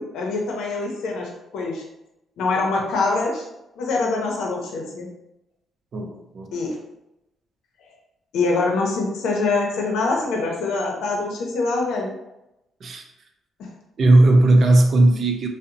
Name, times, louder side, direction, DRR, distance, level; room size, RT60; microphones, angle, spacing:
voice 1, 0.0-1.8 2.4-3.5 3.8-5.1 6.5-6.8 8.3-12.1 13.6-13.7, left 3 dB, 80° left, 0 dB, 0.6 m, -24 dB
voice 2, 5.9-6.5 12.8-13.0 14.0-15.5, right 2 dB, 55° right, 4 dB, 0.4 m, -16 dB
2.7 x 2.0 x 2.5 m, 0.89 s
cardioid pair, 90°, 0 cm